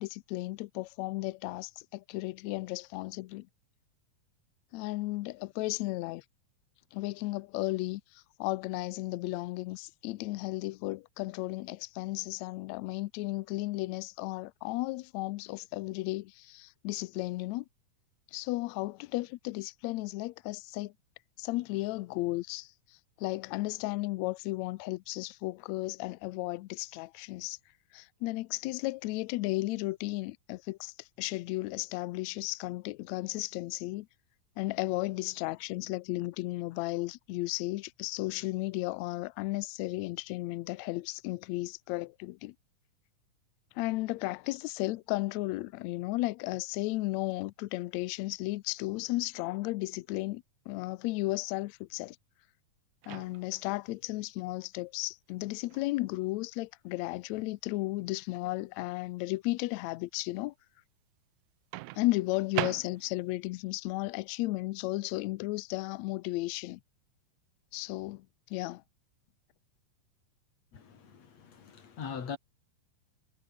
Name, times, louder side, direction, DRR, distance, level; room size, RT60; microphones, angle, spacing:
voice 1, 0.0-3.5 4.7-6.2 6.9-17.6 18.3-20.9 21.4-22.7 23.2-27.6 27.9-34.1 34.6-42.5 43.7-52.2 53.1-60.5 61.9-66.8 67.7-68.2 68.5-68.8, left 20 dB, 90° left, 1.5 m, -34 dB
Microwave oven, 53.0-53.7 55.7-55.9 61.7-63.3, right 19 dB, 80° right, 1.7 m, -38 dB
voice 2, 70.7-72.4, left 6 dB, 50° left, 4.0 m, -41 dB
omnidirectional pair, 3.9 m